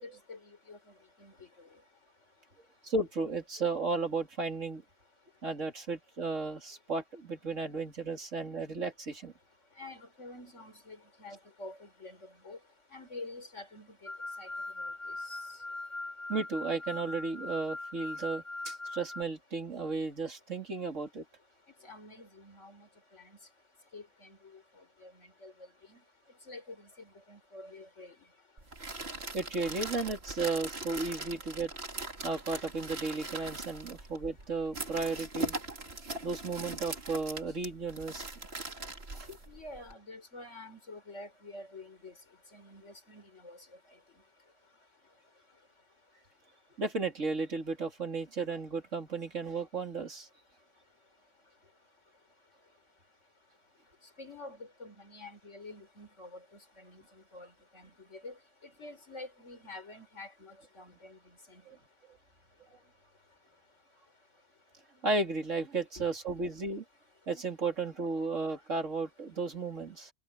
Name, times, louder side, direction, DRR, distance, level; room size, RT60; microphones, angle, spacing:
voice 1, 0.0-0.8 1.2-1.5 9.8-12.6 12.9-14.1 14.4-14.5 14.8-14.9 15.3-15.4 21.8-23.4 23.9-24.6 25.0-25.5 25.9-26.0 26.5-28.1 39.5-42.1 42.5-43.6 54.2-56.4 56.8-57.0 57.3-58.4 58.8-61.2 61.5-61.6 66.0-66.1, left 2 dB, 65° left, 4.9 m, -48 dB
voice 2, 2.8-4.8 5.4-9.3 16.3-21.2 29.3-31.7 32.2-35.6 36.2-38.3 39.1-39.4 46.8-50.3 61.7-61.8 65.0-66.8 67.3-70.1, right 3 dB, 70° right, 3.5 m, -34 dB
sound 1, 14.1-19.2, left 2 dB, 25° left, 1.6 m, -40 dB
sound 2, 28.6-39.9, right 2 dB, 50° right, 3.0 m, -41 dB
omnidirectional pair, 1.3 m